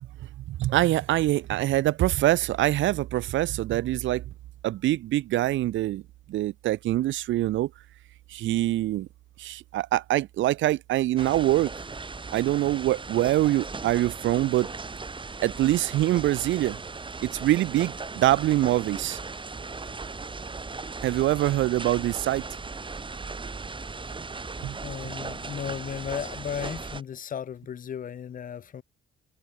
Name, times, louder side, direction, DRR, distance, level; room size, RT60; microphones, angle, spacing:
voice 1, 0.5-4.2 4.6-6.0 6.3-7.7 8.3-9.1 9.4-11.7 12.3-14.7 15.4-16.8 17.2-19.2 21.0-22.4 24.6-24.8, right 15 dB, 75° right, 0.6 m, -24 dB
sound 1, 11.2-27.0, right 4 dB, 25° right, 2.8 m, -37 dB
voice 2, 24.6-28.8, left 8 dB, 45° left, 0.6 m, -35 dB
cardioid pair, 90°, 20 cm